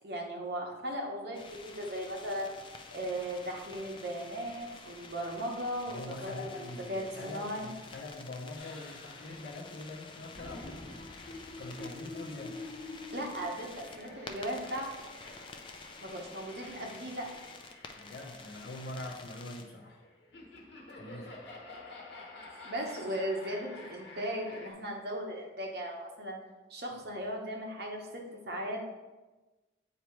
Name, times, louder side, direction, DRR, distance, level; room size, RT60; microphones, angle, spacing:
voice 1, 0.0-2.5 2.9-7.7 13.1-14.9 16.0-17.3 22.6-26.4 26.7-28.8, equal, 60° right, 0 dB, 1.1 m, -37 dB
sound 1, 1.3-19.6, left 3 dB, 25° left, 0.4 m, -50 dB
voice 2, 5.9-10.8 11.6-12.6 17.9-20.0 21.0-21.3, left 2 dB, 70° left, -3 dB, 0.9 m, -43 dB
sound 2, 8.6-24.7, left 2 dB, 85° left, 1.2 m, -49 dB
8.1 x 2.8 x 4.6 m, 1.2 s
head